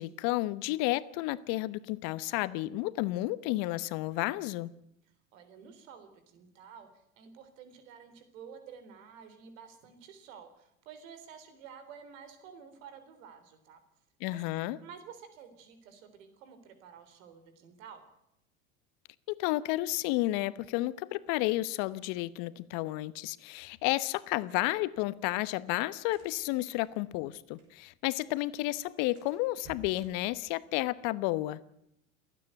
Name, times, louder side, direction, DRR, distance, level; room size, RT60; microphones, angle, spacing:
voice 1, 0.0-4.7 14.2-14.8 19.3-31.6, left 18 dB, 55° left, 1.1 m, -32 dB
voice 2, 5.3-13.8 14.3-14.4 14.8-18.1, right 7 dB, 70° right, 3.8 m, -51 dB
sound 1, 24.6-28.0 28.3-28.4 28.7-28.8 29.1-31.2, right 3 dB, 45° right, 6.0 m, -57 dB
28.5 x 9.7 x 9.3 m
hypercardioid pair, 90°, 41 cm